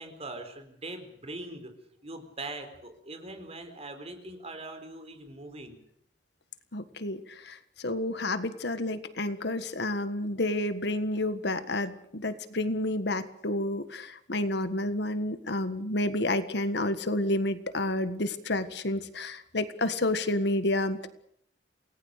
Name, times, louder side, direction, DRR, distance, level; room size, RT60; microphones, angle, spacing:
voice 1, 0.0-1.7 2.0-5.8, right 2 dB, 35° right, 7 dB, 4.2 m, -41 dB
voice 2, 6.7-21.1, left 1 dB, 65° left, 11 dB, 1.6 m, -30 dB
28.5 x 19.0 x 6.7 m, 0.68 s
head